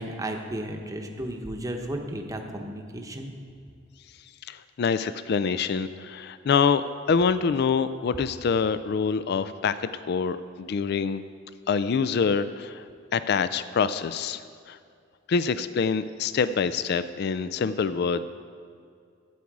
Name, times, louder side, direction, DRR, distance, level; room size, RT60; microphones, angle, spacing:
voice 1, 0.0-3.3, right 1 dB, 15° right, 3 dB, 0.9 m, -34 dB
voice 2, 4.5-11.2 11.7-12.8 13.1-14.4 14.7-14.8 15.3-18.2, left 5 dB, 55° left, 13 dB, 0.3 m, -25 dB
12.5 x 8.5 x 4.8 m, 2.3 s
head